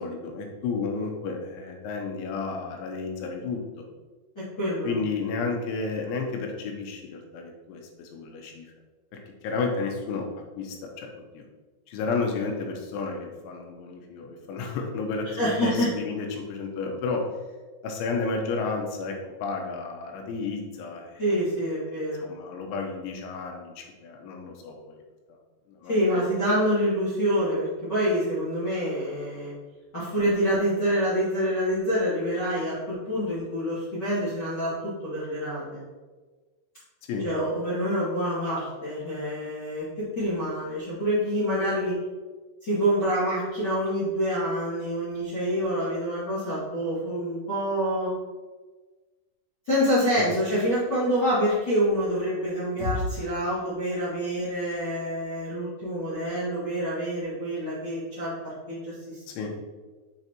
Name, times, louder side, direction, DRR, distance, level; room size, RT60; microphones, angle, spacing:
voice 1, 0.0-3.6 4.8-8.7 9.4-10.3 10.6-11.1 11.3-11.4 11.9-17.3 17.8-21.2 21.9-25.0 25.7-26.2 37.1-37.2 50.1-50.2 59.3-59.5, left 4 dB, 80° left, 2 dB, 3.3 m, -32 dB
voice 2, 4.4-4.9 15.2-15.9 21.2-22.3 25.9-29.5 29.9-32.8 33.0-35.8 37.2-41.9 42.6-48.1 49.7-59.5, equal, 35° left, -12 dB, 1.9 m, -27 dB
7.2 x 6.3 x 2.9 m, 1.3 s
omnidirectional pair, 5.4 m